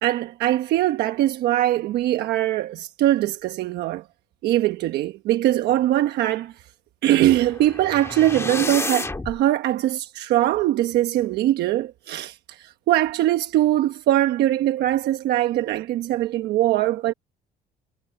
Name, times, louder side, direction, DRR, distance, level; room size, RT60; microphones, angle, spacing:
voice 1, 0.0-4.0 4.4-6.5 7.0-17.1, right 14 dB, 80° right, 1.1 m, -22 dB
sound 1, 7.2-9.4, left 3 dB, 15° left, 2.0 m, -31 dB
cardioid pair, 110°, 17 cm